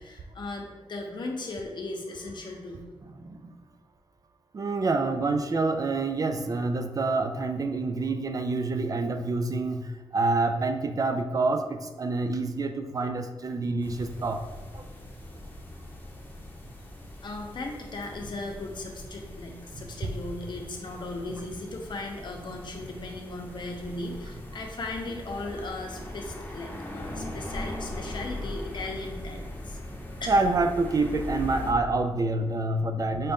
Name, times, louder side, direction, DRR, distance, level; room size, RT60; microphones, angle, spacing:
voice 1, 0.0-2.8 17.2-29.8 30.2-30.3, left 2 dB, 55° left, 1 dB, 0.8 m, -37 dB
voice 2, 3.2-3.5 4.5-14.4 14.7-14.8 19.7-19.8 30.3-33.3, right 3 dB, 40° right, 7 dB, 0.3 m, -27 dB
sound 1, 13.8-31.7, left 1 dB, 20° left, 0.9 m, -40 dB
5.4 x 2.5 x 3.5 m, 1.3 s
cardioid pair, 80°, 9 cm